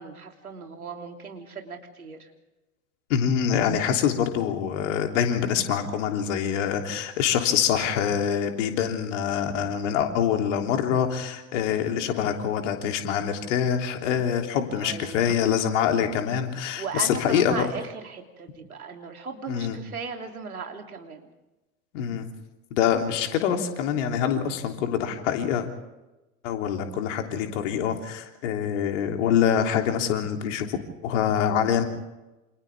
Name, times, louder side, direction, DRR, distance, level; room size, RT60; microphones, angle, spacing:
voice 1, 0.0-2.3 14.8-15.4 16.8-21.3 24.5-24.6, right 5 dB, 80° right, 4 dB, 3.2 m, -37 dB
voice 2, 3.1-17.7 19.5-19.8 21.9-22.3 22.7-25.7 26.4-30.8 31.0-31.8, left 8 dB, 55° left, 4 dB, 3.4 m, -25 dB
28.5 x 27.5 x 3.6 m, 1.0 s
figure-of-eight pair, 85°, 43 cm